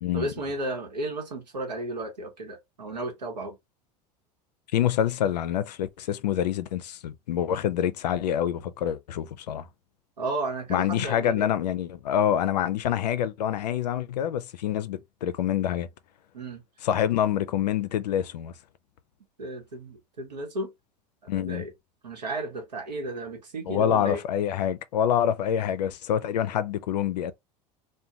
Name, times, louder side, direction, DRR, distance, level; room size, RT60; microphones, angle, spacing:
voice 1, 0.1-3.6 10.2-11.5 16.3-16.6 19.4-20.7 21.3-21.7 22.0-24.2, right 2 dB, 90° right, 1.0 m, -33 dB
voice 2, 4.7-9.7 10.7-15.9 16.8-18.5 21.3-21.6 23.7-27.3, left 10 dB, 80° left, 0.4 m, -26 dB
2.5 x 2.2 x 2.8 m
hypercardioid pair, 80°, 21 cm